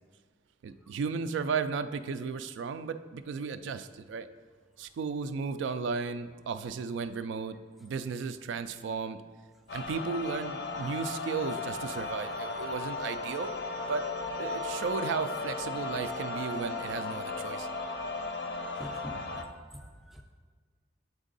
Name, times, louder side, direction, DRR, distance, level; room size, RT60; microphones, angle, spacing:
voice 1, 0.6-4.3 4.8-9.2 9.7-14.1 14.4-17.7, right 5 dB, 85° right, 10 dB, 0.3 m, -34 dB
sound 1, 9.7-19.4, left 3 dB, 70° left, 0.5 m, -36 dB
voice 2, 18.8-20.2, equal, ahead, 3 dB, 0.4 m, -45 dB
8.2 x 3.6 x 3.9 m, 1.5 s
head